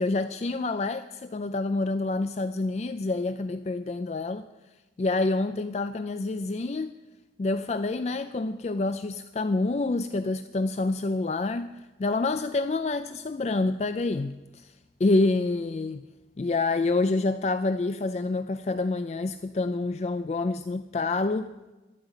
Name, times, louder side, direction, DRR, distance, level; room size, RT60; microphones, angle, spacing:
voice 1, 0.0-4.5 5.0-6.9 7.4-16.0 16.4-21.5, left 3 dB, 35° left, 11 dB, 0.3 m, -27 dB
11.5 x 9.2 x 8.9 m, 1.1 s
head